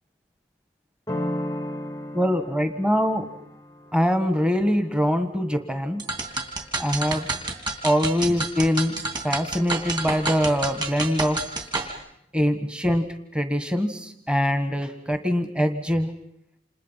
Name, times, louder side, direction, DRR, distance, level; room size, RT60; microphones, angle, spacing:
sound 1, 1.1-6.6, left 1 dB, 20° left, 1.0 m, -35 dB
voice 1, 2.1-3.2 3.9-6.0 6.8-7.3 7.8-8.9 9.2-11.4 12.3-13.0 13.3-16.1, equal, 5° right, 8 dB, 1.6 m, -23 dB
sound 2, 6.0-11.9, right 3 dB, 25° right, 3.5 m, -29 dB
29.0 x 27.5 x 5.8 m, 0.75 s
head